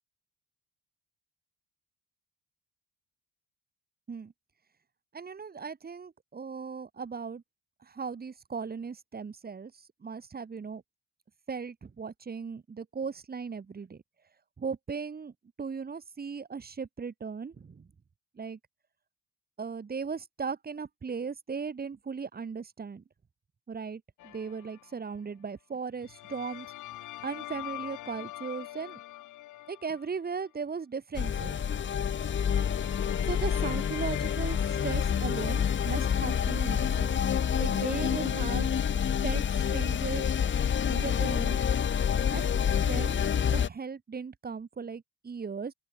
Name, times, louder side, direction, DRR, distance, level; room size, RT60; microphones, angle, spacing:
voice 1, 5.1-7.4 7.8-9.7 10.0-10.8 11.5-14.0 14.6-15.3 15.6-17.9 18.3-18.6 19.6-23.0 23.7-26.7 27.2-29.0 29.7-31.6 33.3-37.1 37.6-38.7 39.2-40.3 40.9-41.7 42.3-45.7, right 5 dB, 30° right, 3.0 m, -37 dB
sound 1, 24.2-25.0 26.0-30.5 32.1-37.0, left 16 dB, 80° left, 2.7 m, -44 dB
sound 2, 31.1-43.7, left 8 dB, 40° left, 1.2 m, -28 dB
open air
cardioid pair, 100°, 30 cm